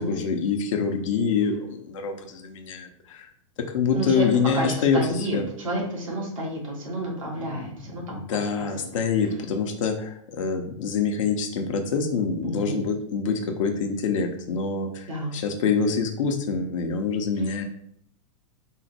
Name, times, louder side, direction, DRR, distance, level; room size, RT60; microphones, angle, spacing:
voice 1, 0.0-3.3 3.6-5.5 7.5-7.8 8.0-17.6, left 5 dB, 75° left, 4 dB, 0.7 m, -26 dB
voice 2, 3.9-4.3 4.5-8.2 8.5-8.7 12.4-12.8 15.1-15.4, right 1 dB, 90° right, -3 dB, 1.5 m, -30 dB
3.7 x 2.1 x 4.2 m, 0.65 s
hypercardioid pair, 115°, 17 cm